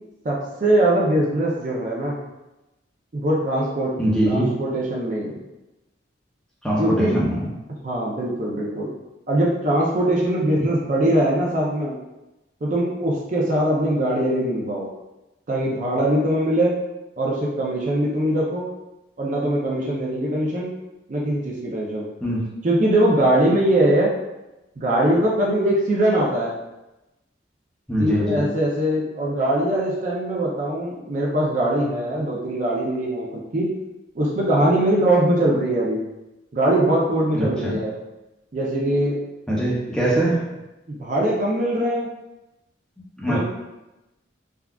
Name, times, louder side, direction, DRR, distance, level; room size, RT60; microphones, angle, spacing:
voice 1, 0.2-2.2 3.1-3.9 4.3-5.4 6.8-7.2 7.8-8.9 9.3-11.9 12.6-14.9 15.5-16.8 17.2-18.7 19.2-20.7 21.1-22.0 22.6-24.1 24.8-26.5 28.0-33.7 34.1-36.0 36.5-37.9 38.5-39.2 40.2-40.3 40.9-42.1 43.3-43.4, right 1 dB, 40° right, -4 dB, 0.4 m, -21 dB
voice 2, 4.0-4.5 6.6-7.5 22.2-22.4 27.9-28.4 37.3-37.8 39.5-40.4 43.2-43.4, right 1 dB, 5° left, -7 dB, 0.6 m, -22 dB
3.5 x 2.3 x 2.3 m, 1.0 s
head